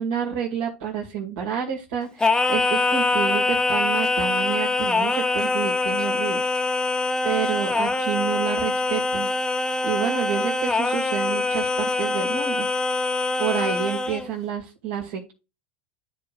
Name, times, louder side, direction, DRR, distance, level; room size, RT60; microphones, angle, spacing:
voice 1, 0.0-6.5 7.2-9.3 9.8-12.7 13.4-15.3, right 8 dB, 70° right, -2 dB, 2.2 m, -29 dB
Singing, 2.2-14.3, left 3 dB, 10° left, 0.8 m, -24 dB
12.5 x 4.7 x 2.5 m, 0.29 s
hypercardioid pair, 90°, 6 cm